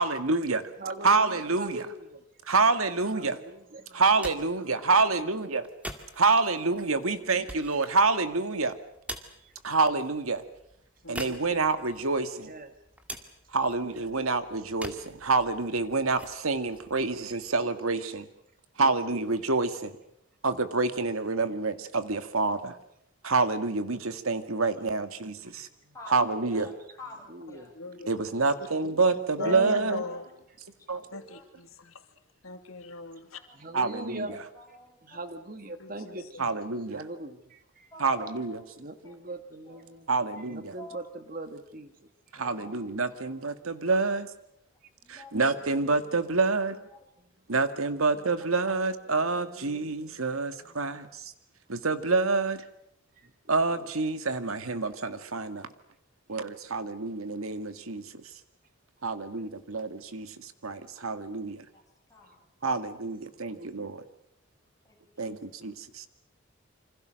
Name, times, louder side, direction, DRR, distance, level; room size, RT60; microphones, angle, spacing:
voice 1, 0.0-0.6 1.0-1.9 2.5-3.4 3.9-5.6 6.2-8.7 9.6-10.4 11.1-12.5 13.5-18.3 18.8-20.0 20.4-22.8 23.2-25.7 26.1-26.7 28.1-30.0 30.9-31.2 33.7-34.4 36.4-37.1 38.0-38.6 40.1-40.7 42.3-44.3 45.1-46.8 47.5-51.3 51.7-52.6 53.5-55.7 56.3-58.3 59.0-61.7 62.6-64.0 65.2-66.1, right 3 dB, 85° right, 10 dB, 1.9 m, -27 dB
voice 2, 1.6-2.2 3.1-3.9 12.4-12.7 17.3-17.4 27.3-27.7 29.4-29.8 33.6-34.3 35.1-36.5 36.9-37.6 38.8-40.1 40.5-41.0 41.3-41.9 42.4-42.8 49.1-50.1 63.5-63.9, right 1 dB, 40° right, 9 dB, 1.8 m, -40 dB
sound 1, 4.0-17.9, right 1 dB, 5° right, 2.1 m, -46 dB
voice 3, 11.0-11.4 27.7-28.1 28.8-28.9 29.4-30.2 31.1-32.0 32.4-33.4 35.8-36.3, left 3 dB, 85° left, 6 dB, 2.8 m, -40 dB
voice 4, 25.9-27.8 28.6-28.9 29.9-30.2 30.9-31.5 33.4-35.2 36.0-36.7 37.9-39.2 39.6-41.0 42.6-42.8 43.2-43.3 45.0-45.6 46.9-47.0 50.8-51.0 61.7-61.8 62.1-62.4 64.8-65.3, left 2 dB, 15° left, -1 dB, 7.7 m, -50 dB
28.0 x 26.0 x 6.5 m, 0.76 s
head